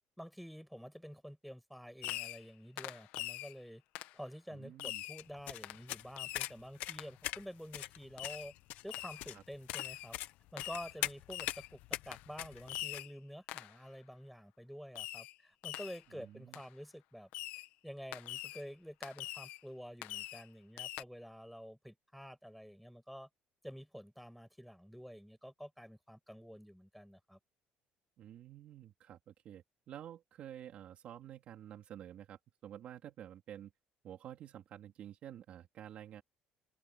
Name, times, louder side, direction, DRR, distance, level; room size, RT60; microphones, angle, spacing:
voice 1, 0.2-3.8 4.1-8.5 8.8-10.2 10.5-17.3 17.8-23.3 23.6-27.4, equal, ahead, 7.1 m, -49 dB
Fireworks, 2.0-2.5 2.8-3.5 3.9-4.2 4.8-5.2 5.6-5.8 6.2-6.5 7.0-7.1 8.2-8.5 8.9-9.3 9.7-10.1 10.6-10.9 11.3-11.7 12.1-12.3 12.7-13.1 13.5-13.8 14.9-15.3 15.6-16.0 16.5-16.6 17.3-17.7 18.1-18.6 19.0-19.6 20.0-20.5 20.8-21.0, left 16 dB, 90° left, 1.4 m, -43 dB
voice 2, 4.5-5.0 9.3-9.4 11.0-11.1 16.1-16.6 28.2-33.7 34.0-36.2, right 10 dB, 45° right, 3.1 m, -50 dB
sound 1, 5.2-13.0, left 15 dB, 70° left, 1.1 m, -42 dB
cardioid pair, 170°, 3 cm